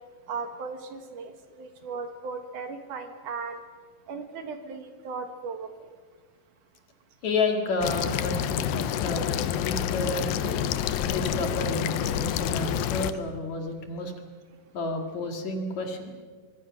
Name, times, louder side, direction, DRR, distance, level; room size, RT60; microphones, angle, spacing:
voice 1, 0.3-3.6 4.1-5.9, right 4 dB, 65° right, 7 dB, 2.9 m, -37 dB
voice 2, 7.2-10.6 11.1-14.1 14.7-16.2, left 2 dB, 55° left, 4 dB, 3.1 m, -31 dB
sound 1, 7.8-13.1, left 10 dB, 80° left, 2.6 m, -28 dB
24.5 x 23.5 x 6.4 m, 1.5 s
omnidirectional pair, 4.2 m